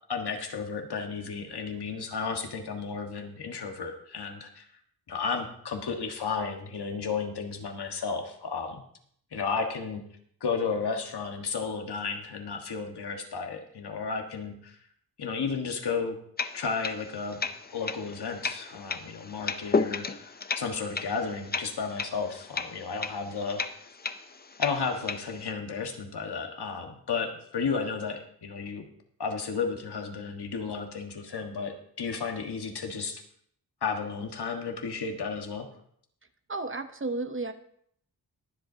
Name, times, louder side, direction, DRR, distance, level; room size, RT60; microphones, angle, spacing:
voice 1, 0.1-4.6 5.1-8.8 9.3-10.0 10.4-14.7 15.2-16.2 16.5-17.4 17.7-23.6 24.6-28.9 29.2-33.2 33.8-35.7, left 5 dB, 75° left, 4 dB, 1.5 m, -33 dB
sound 1, 16.4-25.5, left 4 dB, 25° left, 0.5 m, -34 dB
voice 2, 36.5-37.5, right 3 dB, 30° right, 8 dB, 0.8 m, -32 dB
22.5 x 7.7 x 2.8 m, 0.66 s
wide cardioid pair, 130°, 39 cm